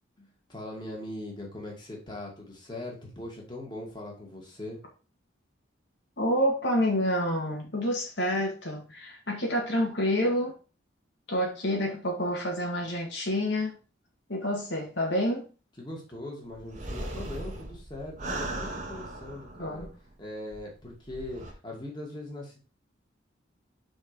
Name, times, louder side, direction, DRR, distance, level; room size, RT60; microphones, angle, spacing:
voice 1, 0.2-4.8 15.8-19.9 20.2-22.6, left 1 dB, 25° left, 2.6 m, -40 dB
voice 2, 6.2-10.5 11.3-13.7 14.3-15.5 19.6-19.9, equal, 65° left, 2.1 m, -28 dB
sound 1, 16.5-20.1 20.5-20.6 21.0-21.5, right 2 dB, 40° right, 1.5 m, -38 dB
6.0 x 5.3 x 5.2 m
head